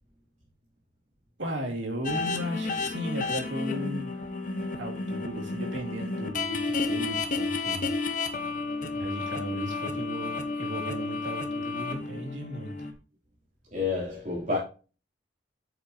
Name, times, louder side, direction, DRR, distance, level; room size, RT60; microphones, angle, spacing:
voice 1, 1.4-4.3 4.8-7.9 8.9-12.9, equal, 90° right, 2.8 m, -36 dB
sound 1, 2.0-12.9, left 3 dB, 45° left, 1.3 m, -32 dB
voice 2, 13.7-14.6, left 4 dB, 40° right, 3.3 m, -29 dB
9.1 x 7.9 x 3.0 m
head